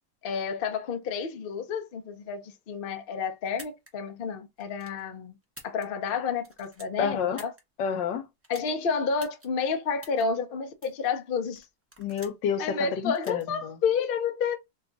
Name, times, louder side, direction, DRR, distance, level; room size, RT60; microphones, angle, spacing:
voice 1, 0.2-5.3 5.6-7.5 8.5-11.6 12.6-14.6, left 5 dB, 65° left, 0.5 m, -30 dB
sound 1, 3.5-3.9 4.6-5.0 5.4-6.1 6.4-7.6 8.4-8.7 9.2-9.5 10.0-10.2 10.8-11.1 11.6-12.5 13.1-13.4, right 1 dB, 20° right, 0.4 m, -48 dB
voice 2, 7.0-7.4 7.8-8.3 12.0-13.7, left 7 dB, 85° left, 1.4 m, -29 dB
3.2 x 2.4 x 3.8 m
omnidirectional pair, 1.9 m